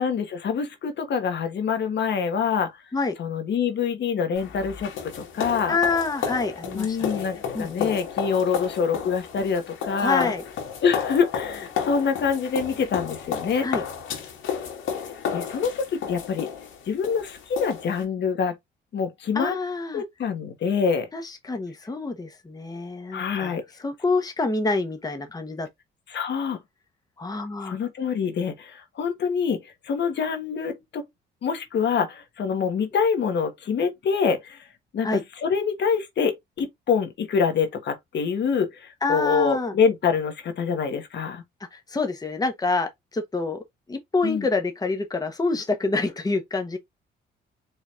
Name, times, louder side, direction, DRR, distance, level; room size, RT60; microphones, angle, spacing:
voice 1, 0.0-2.7 3.2-5.8 6.7-10.3 10.8-13.7 15.3-16.5 16.9-18.5 18.9-19.5 19.9-21.1 23.1-23.6 26.1-26.6 27.6-29.6 29.8-31.0 31.4-34.6 34.9-41.4 44.2-44.5, left 6 dB, 60° left, 1.5 m, -25 dB
sound 1, 4.3-18.0, left 7 dB, 80° left, 2.0 m, -32 dB
voice 2, 5.7-7.3 7.5-7.9 10.0-10.4 13.6-13.8 19.3-20.0 21.1-25.7 27.2-27.8 35.0-35.2 39.0-39.7 41.7-43.6 43.9-46.8, left 3 dB, 20° left, 1.1 m, -27 dB
4.6 x 3.9 x 2.6 m
cardioid pair, 90°, 20 cm